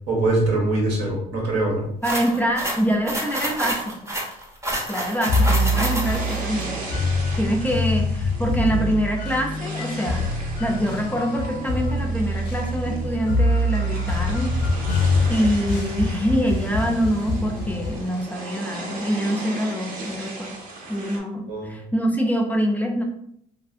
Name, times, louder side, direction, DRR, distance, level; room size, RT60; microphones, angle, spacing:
voice 1, 0.1-1.8 21.5-21.7, right 2 dB, 85° right, -2 dB, 1.1 m, -22 dB
voice 2, 2.0-4.1 4.9-6.7 7.4-14.5 15.3-20.5 20.9-23.0, equal, 10° left, 1 dB, 0.3 m, -25 dB
sound 1, 2.0-6.4, right 1 dB, 15° right, 0.7 m, -28 dB
sound 2, 5.3-18.0, left 1 dB, 85° left, 0.4 m, -24 dB
sound 3, 5.4-21.2, right 2 dB, 55° right, 0.7 m, -37 dB
2.5 x 2.4 x 2.4 m, 0.73 s
cardioid pair, 110°, 17 cm